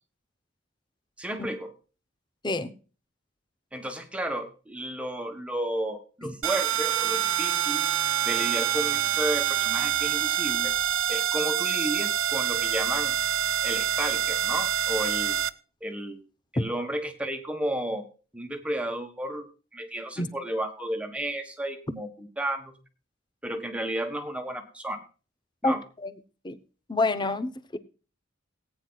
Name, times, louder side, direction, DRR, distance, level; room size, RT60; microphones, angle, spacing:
voice 1, 1.2-1.7 3.7-7.8 8.2-10.7 11.1-13.2 13.6-15.4 15.8-16.2 16.5-18.0 18.3-19.5 19.7-22.7 23.4-25.0 25.6-25.8, right 1 dB, 5° right, 1.5 m, -32 dB
sound 1, 6.4-15.5, right 10 dB, 85° right, 0.6 m, -26 dB
voice 2, 25.6-26.1 26.4-26.6 26.9-27.8, left 2 dB, 20° left, 0.9 m, -28 dB
19.0 x 9.3 x 2.4 m
head